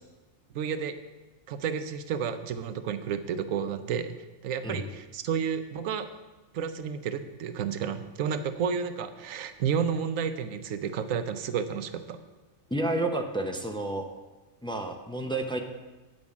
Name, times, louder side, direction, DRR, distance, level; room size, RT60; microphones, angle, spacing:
voice 1, 0.5-0.9 1.5-4.1 4.4-6.1 6.5-12.2, right 7 dB, 85° right, 10 dB, 1.1 m, -31 dB
voice 2, 12.7-14.1 14.6-15.6, right 2 dB, 10° left, 4 dB, 0.3 m, -30 dB
9.3 x 5.2 x 7.1 m, 1.2 s
omnidirectional pair, 1.4 m